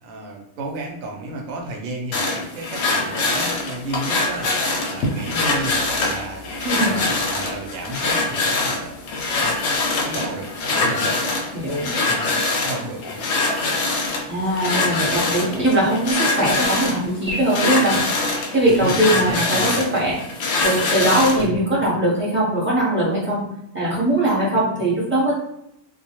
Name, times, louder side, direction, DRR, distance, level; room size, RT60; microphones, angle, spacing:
voice 1, 0.0-8.9 9.4-9.7 10.0-13.2 18.8-19.9 21.4-21.6, right 2 dB, 75° right, 1 dB, 0.9 m, -33 dB
sound 1, 2.1-21.5, left 3 dB, 65° left, 0.7 m, -23 dB
voice 2, 6.6-7.0 11.5-11.9 14.3-18.0 18.5-20.2 20.6-23.5 23.7-25.3, right 1 dB, 10° right, -7 dB, 0.6 m, -20 dB
2.3 x 2.1 x 2.9 m, 0.77 s
omnidirectional pair, 1.4 m